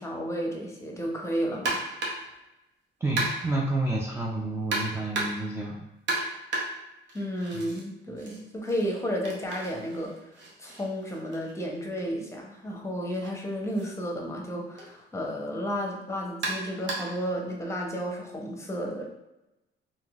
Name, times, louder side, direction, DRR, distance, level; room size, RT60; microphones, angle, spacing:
voice 1, 0.0-2.2 7.1-10.1 10.6-19.0, equal, 15° left, -1 dB, 0.7 m, -32 dB
sound 1, 1.7-2.3 3.2-3.7 4.7-5.5 6.1-7.8 8.2-12.0 13.1-13.3 13.7-13.9 14.8-14.9 16.4-17.3, right 2 dB, 70° right, 0.8 m, -34 dB
voice 2, 3.0-5.8, right 2 dB, 10° right, -3 dB, 0.4 m, -29 dB
3.6 x 2.6 x 2.4 m, 0.94 s
cardioid pair, 90°, 20 cm